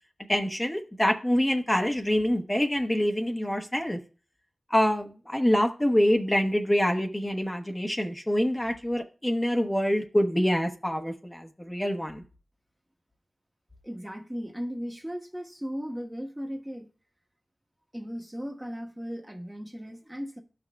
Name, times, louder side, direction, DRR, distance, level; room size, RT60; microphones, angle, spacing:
voice 1, 0.3-4.0 4.7-12.2, equal, 20° left, 1.1 m, -26 dB
voice 2, 13.8-16.9 17.9-20.4, equal, 10° right, 1.1 m, -36 dB
12.5 x 6.1 x 2.3 m
cardioid pair, 40°, 0 cm